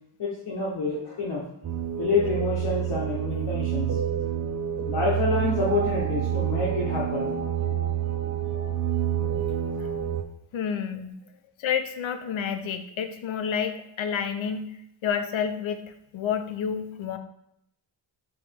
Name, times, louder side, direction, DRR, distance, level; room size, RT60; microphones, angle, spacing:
voice 1, 0.2-1.4 2.0-3.9 4.9-7.3, left 3 dB, 65° left, -5 dB, 1.0 m, -27 dB
sound 1, 1.6-10.2, right 9 dB, 40° right, 0.4 m, -28 dB
voice 2, 10.5-11.1 11.6-14.8 15.0-15.8 16.1-17.2, left 7 dB, 80° left, 8 dB, 0.6 m, -29 dB
5.0 x 3.0 x 3.5 m, 0.77 s
wide cardioid pair, 125°, 47 cm